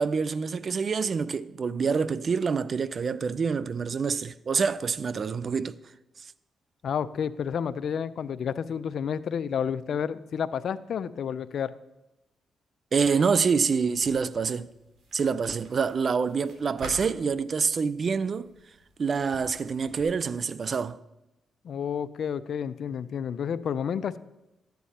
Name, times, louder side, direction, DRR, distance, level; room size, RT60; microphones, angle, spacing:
voice 1, 0.0-5.8 6.2-6.3 12.9-14.7 15.1-18.5 19.0-21.0, right 5 dB, 50° right, 0.5 m, -26 dB
voice 2, 6.8-11.7 21.6-24.2, left 7 dB, 70° left, 0.5 m, -30 dB
sound 1, 13.9-20.0, right 2 dB, 70° right, 2.7 m, -48 dB
13.5 x 9.3 x 4.2 m
cardioid pair, 70°, 0 cm